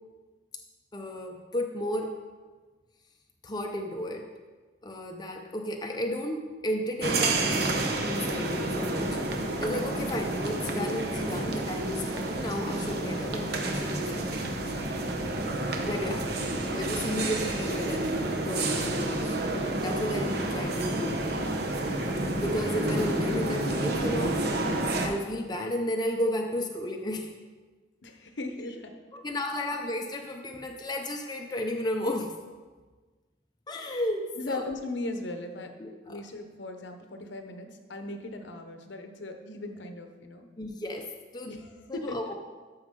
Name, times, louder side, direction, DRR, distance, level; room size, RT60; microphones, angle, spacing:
voice 1, 0.9-2.1 3.4-4.3 4.8-9.2 9.6-14.5 15.9-16.2 16.7-19.4 19.8-21.2 22.3-24.5 25.0-27.3 29.1-32.3 33.7-34.6 35.8-36.2 40.6-41.1 41.3-41.5 41.9-42.3, left 1 dB, 20° left, 2 dB, 0.6 m, -33 dB
sound 1, 7.0-25.1, right 2 dB, 55° right, 0.9 m, -29 dB
voice 2, 28.0-29.0 34.4-35.8 36.1-40.5 41.5-42.3, left 2 dB, 70° left, 5 dB, 0.9 m, -38 dB
12.5 x 6.2 x 3.7 m, 1.4 s
head